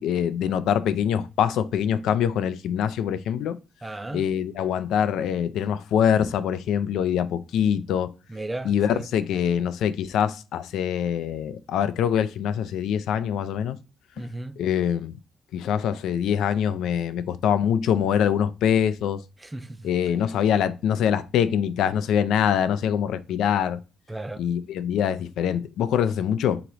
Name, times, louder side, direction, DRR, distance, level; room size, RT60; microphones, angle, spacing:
voice 1, 0.0-3.6 4.1-8.1 8.6-13.8 14.6-15.1 15.5-19.2 19.8-23.8 24.4-26.6, left 9 dB, 85° left, 0.4 m, -24 dB
voice 2, 3.8-4.3 8.3-9.1 14.2-14.5 19.4-19.8 24.1-24.4, right 2 dB, 10° right, 0.3 m, -34 dB
3.9 x 2.9 x 4.6 m
cardioid pair, 170°, 0 cm